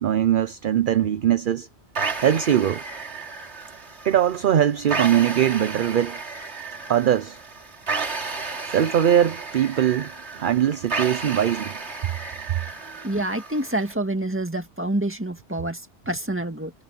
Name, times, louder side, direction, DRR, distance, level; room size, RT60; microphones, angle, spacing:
voice 1, 0.0-1.7 2.2-2.8 4.0-6.2 6.9-7.4 8.7-10.1 10.4-11.7, right 10 dB, 55° right, 0.7 m, -21 dB
sound 1, 2.0-13.9, right 4 dB, 90° right, 2.7 m, -33 dB
voice 2, 13.0-16.7, right 1 dB, 10° right, 1.9 m, -27 dB
omnidirectional pair, 1.1 m